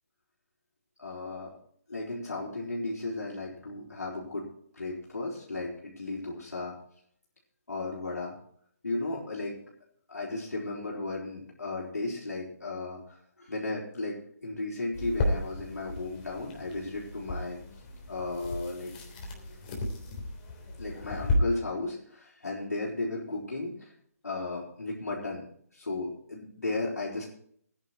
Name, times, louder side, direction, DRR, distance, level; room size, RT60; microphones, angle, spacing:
voice 1, 1.0-1.6 1.9-4.5 4.7-6.7 7.7-8.3 8.8-9.6 10.1-17.6 18.1-18.9 20.8-23.9 24.2-25.4 25.7-27.3, left 2 dB, 85° left, -4 dB, 4.4 m, -35 dB
sound 1, 14.9-21.4, left 2 dB, 35° left, 3.4 m, -35 dB
15.0 x 10.5 x 4.6 m, 0.63 s
figure-of-eight pair, 150°, 9 cm